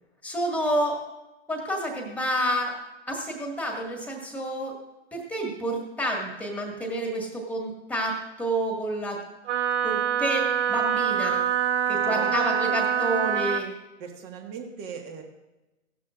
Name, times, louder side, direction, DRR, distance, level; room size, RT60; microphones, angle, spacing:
voice 1, 0.2-1.0 1.5-2.7 3.1-4.7 5.1-9.2 9.8-11.5 11.9-13.7, right 1 dB, 5° left, 1 dB, 1.9 m, -29 dB
Wind instrument woodwind instrument, 9.5-13.7, right 9 dB, 70° right, 1.2 m, -25 dB
voice 2, 11.9-12.5 14.0-15.2, right 6 dB, 30° right, 3 dB, 1.7 m, -38 dB
16.5 x 12.0 x 2.5 m, 1.0 s
hypercardioid pair, 130°, 38 cm